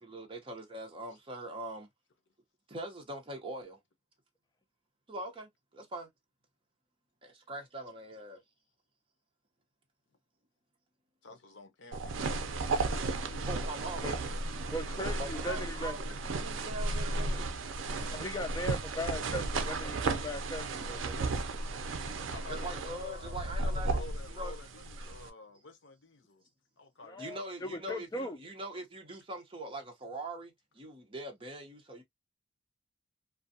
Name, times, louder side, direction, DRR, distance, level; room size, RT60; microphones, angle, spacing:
voice 1, 0.0-1.9 2.7-3.8 5.1-6.1 7.2-8.4 13.5-14.1 15.2-17.6 22.5-24.5 25.0-25.1 27.2-32.0, right 1 dB, 25° right, 0.7 m, -42 dB
voice 2, 11.2-12.3 12.7-13.7 16.0-16.1 22.3-26.4 26.8-27.4, left 3 dB, 65° left, 0.7 m, -50 dB
sound 1, 11.9-25.3, right 3 dB, 75° right, 0.5 m, -34 dB
voice 3, 14.7-16.0 18.1-21.2 27.1-28.4, left 1 dB, 20° left, 0.4 m, -38 dB
2.6 x 2.2 x 2.5 m
head